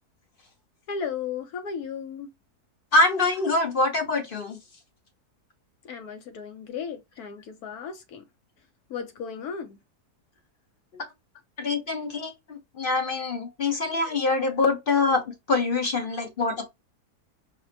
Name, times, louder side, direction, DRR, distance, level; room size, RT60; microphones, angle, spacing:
voice 1, 0.9-2.3 5.8-8.2 8.9-9.8, left 6 dB, 70° left, 1.2 m, -35 dB
voice 2, 2.9-4.6 11.6-15.2 15.5-16.7, left 3 dB, 40° left, 0.9 m, -24 dB
5.1 x 2.1 x 2.7 m
omnidirectional pair, 1.7 m